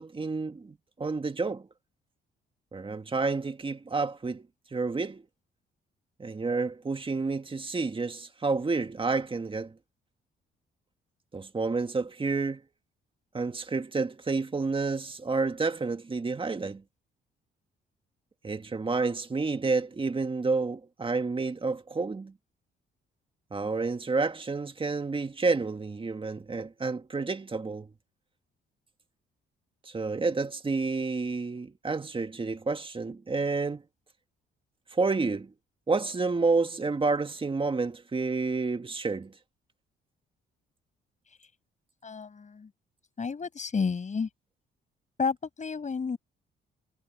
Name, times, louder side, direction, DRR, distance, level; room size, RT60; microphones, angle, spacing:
voice 1, 0.0-1.7 2.7-4.5 4.7-5.2 6.2-9.7 11.3-12.6 13.3-16.8 18.4-22.3 23.5-27.9 29.8-33.8 34.9-35.5 35.9-39.3, right 4 dB, 25° right, 1.8 m, -29 dB
voice 2, 42.0-42.7 43.2-44.3 45.2-46.2, left 5 dB, 40° left, 6.5 m, -31 dB
cardioid pair, 90°, 20 cm